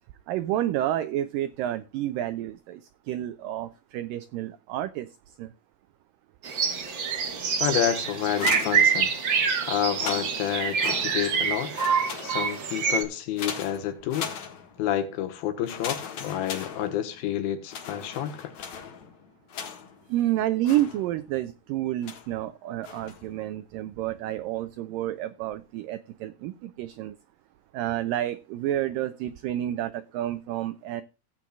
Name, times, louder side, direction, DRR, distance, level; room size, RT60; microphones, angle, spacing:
voice 1, 0.3-2.8 3.1-5.1 5.4-5.5 20.1-27.2 27.7-31.0, right 13 dB, 85° right, 1.9 m, -29 dB
sound 1, 6.4-13.0, right 6 dB, 60° right, 1.2 m, -26 dB
voice 2, 7.6-9.1 9.6-11.7 12.2-14.3 14.8-18.5, left 11 dB, 75° left, 2.9 m, -29 dB
sound 2, 8.2-9.4 9.8-11.4 11.7-12.7 13.4-14.9 15.6-17.3 17.7-20.1 20.6-21.4 22.0-22.4 22.8-23.3, left 7 dB, 55° left, 2.5 m, -38 dB
16.5 x 8.5 x 2.4 m
omnidirectional pair, 4.6 m